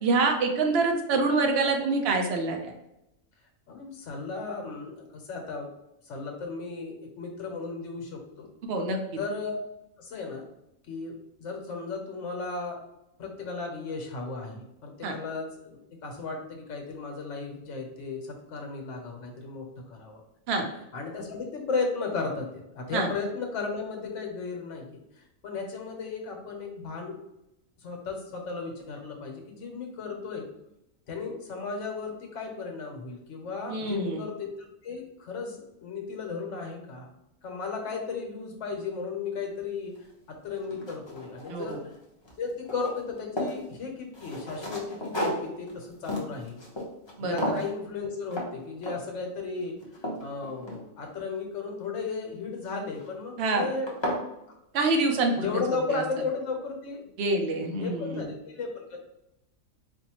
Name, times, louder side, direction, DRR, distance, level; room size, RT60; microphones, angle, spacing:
voice 1, 0.0-2.7 8.7-9.0 15.0-15.1 20.5-20.7 22.9-23.1 33.7-34.2 41.5-41.8 47.2-47.6 53.4-53.7 54.7-55.5 55.9-56.0 57.2-58.2, right 3 dB, 60° right, 3 dB, 0.8 m, -26 dB
voice 2, 3.7-5.7 6.0-8.5 9.2-9.6 10.0-10.5 10.9-11.1 11.4-12.8 13.2-20.2 20.9-27.2 27.8-30.5 31.1-34.5 34.8-37.1 37.4-39.9 40.3-41.9 42.4-46.6 47.2-49.7 50.2-53.9 55.2-57.0 57.8-59.0, left 4 dB, 65° left, 2 dB, 1.1 m, -35 dB
sound 1, 40.0-40.1 40.5-42.0 42.2-43.6 44.1-47.1 47.4-47.7 48.3-48.5 48.8-49.2 49.6-51.2 52.7-53.1 53.5-53.6 53.9-54.3, equal, 30° left, 0.5 m, -34 dB
4.2 x 2.6 x 2.9 m, 0.86 s
omnidirectional pair, 1.4 m